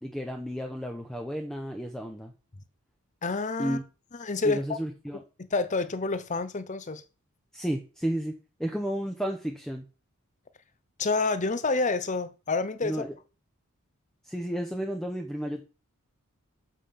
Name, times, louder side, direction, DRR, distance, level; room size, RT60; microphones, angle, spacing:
voice 1, 0.0-2.3 3.6-3.8 4.4-5.2 7.5-8.3 8.6-9.8 12.8-13.1 14.2-15.6, equal, ahead, 0.8 m, -32 dB
voice 2, 3.2-3.8 4.1-4.6 5.5-7.0 11.0-13.0, left 3 dB, 35° left, 0.7 m, -28 dB
7.6 x 5.1 x 5.7 m
head